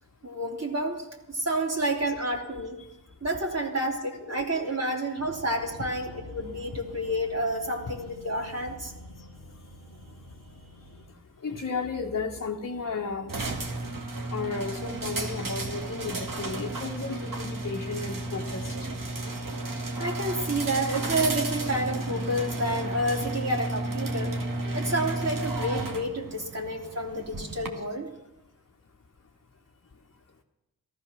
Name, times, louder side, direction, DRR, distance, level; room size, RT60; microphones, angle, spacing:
voice 1, 0.2-2.8 3.2-8.9 20.0-24.3 24.7-28.1, right 1 dB, 40° right, -1 dB, 3.3 m, -29 dB
voice 2, 4.2-4.8 11.4-13.6 14.3-18.7, left 4 dB, 40° left, 0 dB, 1.3 m, -34 dB
sound 1, 5.2-11.1, equal, 80° right, 4.5 m, -48 dB
sound 2, 13.3-27.7, right 2 dB, 55° right, 2.1 m, -33 dB
14.0 x 13.5 x 6.2 m, 1.0 s
supercardioid pair, 40°, 38 cm